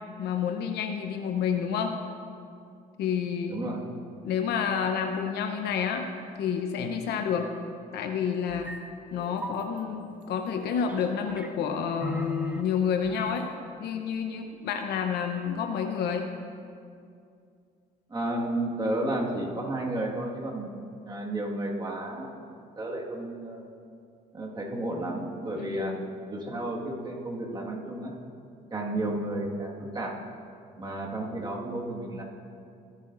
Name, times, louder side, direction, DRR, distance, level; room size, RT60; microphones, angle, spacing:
voice 1, 0.2-1.9 3.0-3.6 4.2-6.0 6.4-7.5 7.9-8.7 9.1-13.4 13.8-16.2 25.5-26.0, left 7 dB, 75° left, 5 dB, 0.9 m, -29 dB
voice 2, 3.5-3.8 18.1-20.7 21.0-22.4 22.8-23.7 24.3-26.0 26.3-28.1 28.7-30.2 30.8-32.2, right 1 dB, 25° right, -2 dB, 1.8 m, -32 dB
sound 1, 8.5-8.8 9.1-9.6 10.6-11.5 12.0-12.6 13.0-13.4, right 1 dB, 10° right, 0.8 m, -38 dB
24.0 x 8.4 x 2.6 m, 2.4 s
cardioid pair, 110°, 17 cm